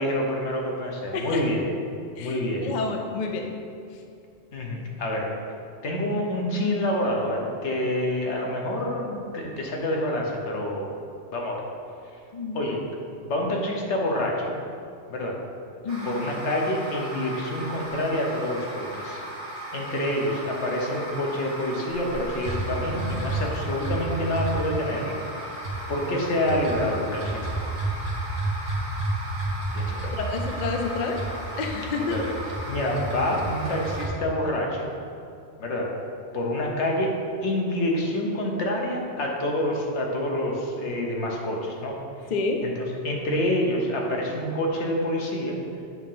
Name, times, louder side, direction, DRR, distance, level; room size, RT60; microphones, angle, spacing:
voice 1, 0.0-1.6 2.2-2.7 4.5-5.3 5.8-10.9 11.3-11.7 12.5-12.8 13.2-14.5 15.1-15.4 16.1-19.2 19.7-25.2 25.9-27.6 29.7-30.0 32.1-32.2 32.7-34.9 35.6-35.9 36.3-37.1 37.4-42.0 42.6-42.7 43.0-45.6, left 1 dB, 90° left, -1 dB, 1.2 m, -27 dB
voice 2, 1.1-1.4 2.2-3.5 12.3-12.6 15.8-16.2 30.1-31.2 31.5-32.2 42.3-42.6, left 4 dB, 50° left, 3 dB, 0.6 m, -29 dB
sound 1, 15.9-34.1, right 1 dB, 60° right, 1.4 m, -32 dB
7.8 x 2.9 x 5.4 m, 2.4 s
omnidirectional pair, 1.1 m